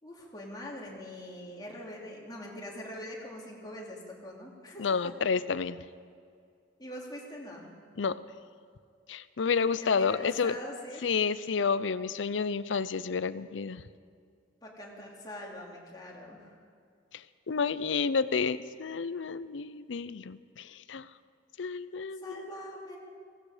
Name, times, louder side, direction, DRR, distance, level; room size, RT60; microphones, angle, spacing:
voice 1, 0.0-5.1 6.8-7.7 9.8-11.1 14.6-16.5 22.2-23.0, left 1 dB, 20° left, -3 dB, 2.8 m, -43 dB
voice 2, 4.8-5.8 8.0-8.2 9.1-10.6 11.0-13.8 17.1-21.1 21.6-22.4, left 5 dB, 80° left, 15 dB, 0.6 m, -30 dB
17.5 x 16.0 x 5.0 m, 2.3 s
head